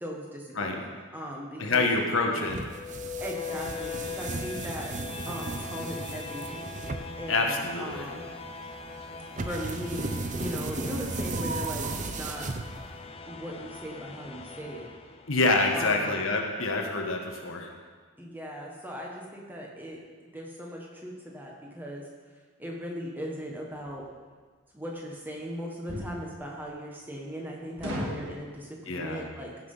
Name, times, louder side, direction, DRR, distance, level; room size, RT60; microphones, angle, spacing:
voice 1, 0.0-1.9 3.2-5.0 5.3-6.7 7.2-8.2 9.4-12.5 13.3-14.9 15.7-16.2 18.2-20.0 20.3-22.1 22.6-24.1 24.7-29.5, equal, 10° right, -2 dB, 1.5 m, -38 dB
voice 2, 1.6-2.6 7.3-8.1 15.3-17.7 28.9-29.2, left 3 dB, 65° left, 2 dB, 1.4 m, -27 dB
sound 1, 2.5-13.1, right 3 dB, 35° right, 0.6 m, -35 dB
sound 2, 2.6-15.6, left 5 dB, 25° left, 0.6 m, -41 dB
sound 3, 23.7-24.0 25.9-26.2 27.8-28.3, equal, 55° right, 2.4 m, -33 dB
16.0 x 6.1 x 5.7 m, 1.5 s
head